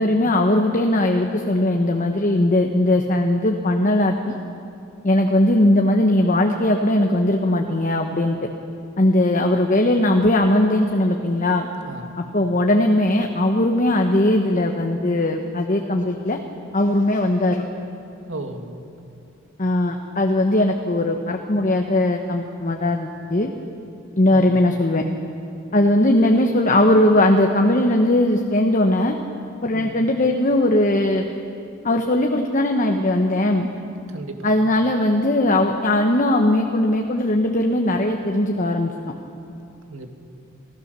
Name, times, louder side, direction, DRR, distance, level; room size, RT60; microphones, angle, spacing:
voice 1, 0.0-4.3 5.0-8.5 9.0-11.7 12.2-16.4 16.7-17.6 19.6-23.5 24.2-25.0 25.7-29.1 29.6-31.3 31.8-33.7 34.4-38.9, left 1 dB, 40° left, 3 dB, 1.1 m, -19 dB
voice 2, 11.9-12.2 18.3-18.8 24.3-24.6 29.7-30.0 34.1-34.6 39.9-40.1, right 2 dB, 80° right, 5 dB, 1.9 m, -35 dB
28.0 x 15.5 x 6.8 m, 2.7 s
head